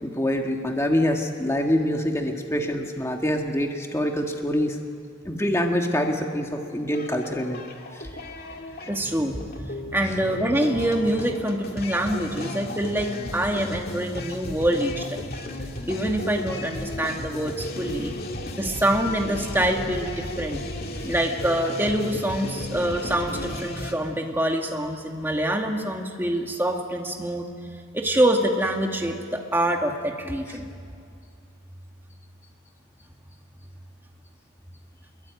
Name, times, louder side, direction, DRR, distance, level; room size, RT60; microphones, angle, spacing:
voice 1, 0.0-4.8 5.2-7.6 7.9-8.3 20.9-21.1 30.5-30.6, equal, 15° left, 2 dB, 1.6 m, -25 dB
sound 1, 6.9-23.9, left 1 dB, 45° left, 2.4 m, -35 dB
voice 2, 8.8-9.4 9.9-15.2 15.9-18.1 18.6-20.6 21.0-27.4 27.9-30.7, right 1 dB, 10° right, 2 dB, 2.3 m, -25 dB
26.5 x 22.5 x 9.4 m, 2.4 s
head